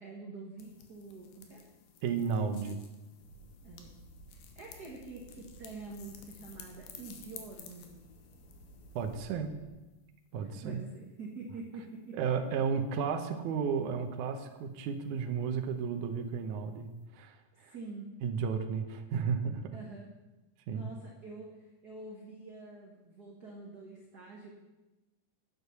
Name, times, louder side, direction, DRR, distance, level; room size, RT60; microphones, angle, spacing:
voice 1, 0.0-1.6 3.6-4.0 4.3-8.0 10.4-12.8 17.6-18.1 19.7-20.1 20.7-24.5, right 3 dB, 55° right, -1 dB, 1.1 m, -46 dB
sound 1, 0.6-9.2, left 7 dB, 80° left, 2.9 m, -54 dB
voice 2, 2.0-2.8 9.0-9.5 10.3-10.8 12.1-16.9 17.1-17.7 18.2-19.8 20.7-20.9, right 6 dB, 75° right, 5 dB, 2.2 m, -33 dB
sound 2, 3.2-9.7, right 1 dB, 55° left, 3.9 m, -56 dB
10.0 x 8.0 x 6.8 m, 1.1 s
omnidirectional pair, 3.8 m